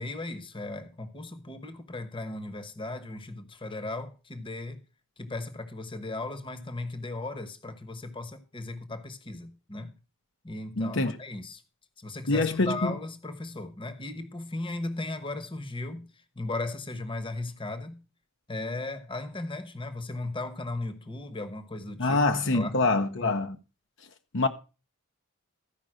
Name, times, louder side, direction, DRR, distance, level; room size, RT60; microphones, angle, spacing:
voice 1, 0.0-4.8 5.2-10.0 10.4-11.6 12.0-18.0 18.5-22.2 22.5-22.8 23.2-23.3, left 2 dB, 25° left, 1.1 m, -36 dB
voice 2, 10.8-11.2 12.3-12.9 22.0-23.6 24.3-24.5, left 3 dB, 60° left, 0.9 m, -25 dB
13.5 x 5.3 x 6.2 m
head